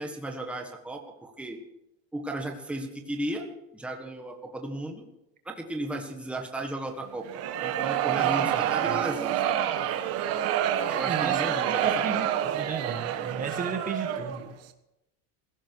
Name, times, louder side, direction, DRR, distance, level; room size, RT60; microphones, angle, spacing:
voice 1, 0.0-1.6 2.1-5.0 5.4-7.2 7.6-9.6 10.9-12.2, right 1 dB, 5° right, 2 dB, 1.5 m, -35 dB
sound 1, 7.2-14.5, right 10 dB, 40° right, 1.3 m, -28 dB
voice 2, 11.0-11.4 11.8-12.3 12.5-14.4, right 5 dB, 20° right, 5 dB, 1.5 m, -33 dB
18.0 x 16.0 x 4.7 m, 0.88 s
cardioid pair, 175°, 38 cm